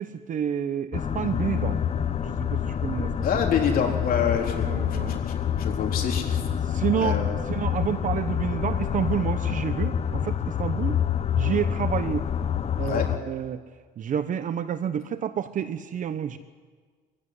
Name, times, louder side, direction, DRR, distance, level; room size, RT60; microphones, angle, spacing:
voice 1, 0.0-1.8 2.2-3.1 4.6-5.2 6.6-11.0 11.4-12.2 12.8-13.6 14.0-16.4, right 9 dB, 50° right, 11 dB, 0.9 m, -29 dB
sound 1, 0.9-13.2, left 8 dB, 40° left, 0.9 m, -27 dB
voice 2, 3.2-6.4 7.0-7.3 12.8-13.1, left 7 dB, 60° left, 1 dB, 3.7 m, -27 dB
25.5 x 15.5 x 9.7 m, 1.5 s
cardioid pair, 110°, 17 cm